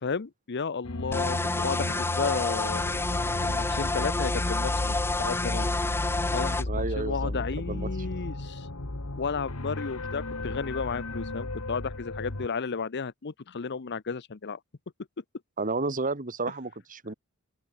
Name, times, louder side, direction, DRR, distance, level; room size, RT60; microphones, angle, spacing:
voice 1, 0.0-2.8 3.4-5.7 6.3-8.7 9.2-14.6, left 5 dB, 55° left, 0.7 m, -33 dB
sound 1, 0.8-12.5, left 2 dB, 80° left, 1.9 m, -34 dB
sound 2, 1.1-6.6, left 2 dB, 10° left, 0.5 m, -29 dB
voice 2, 6.7-7.9 15.6-17.1, right 3 dB, 40° right, 1.8 m, -32 dB
open air
head